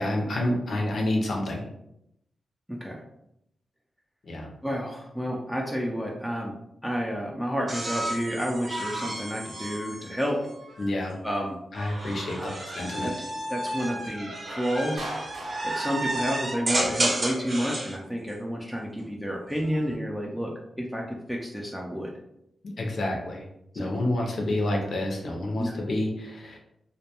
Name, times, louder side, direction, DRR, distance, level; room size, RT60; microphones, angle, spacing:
voice 1, 0.0-1.6 4.3-4.5 10.8-11.2 11.7-12.4 12.8-13.1 22.8-23.4 23.8-26.6, left 1 dB, 65° left, 1 dB, 0.6 m, -28 dB
voice 2, 2.7-3.0 4.6-6.5 6.8-10.4 11.2-11.6 12.4-12.5 13.0-13.1 13.5-15.1 15.6-22.1 23.7-24.0 25.6-25.7, equal, ahead, -2 dB, 0.4 m, -30 dB
sound 1, 7.7-10.9 11.7-18.0 19.4-19.9, right 1 dB, 40° right, 0.6 m, -32 dB
Clapping, 15.0-17.0, right 1 dB, 85° right, 0.6 m, -39 dB
2.2 x 2.2 x 2.8 m, 0.79 s
cardioid pair, 85°, 0 cm